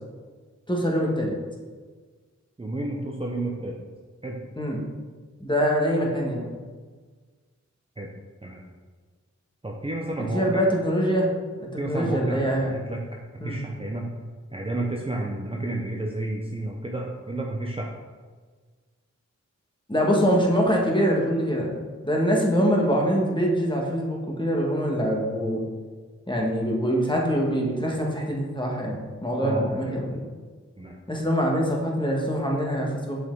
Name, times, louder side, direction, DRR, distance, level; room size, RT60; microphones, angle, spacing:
voice 1, 0.7-1.4 4.6-4.8 5.4-6.5 10.2-11.3 11.6-12.8 13.4-13.6 19.9-25.6 26.3-30.2 31.1-33.2, equal, 15° left, -1 dB, 1.6 m, -24 dB
voice 2, 2.6-3.8 4.2-4.4 6.0-6.1 8.0-8.1 8.4-8.6 9.6-10.6 11.8-13.0 13.4-14.1 14.5-17.9 29.4-29.9 30.8-31.0, right 1 dB, 20° right, -1 dB, 0.8 m, -31 dB
6.5 x 5.4 x 3.9 m, 1.5 s
wide cardioid pair, 60°, 29 cm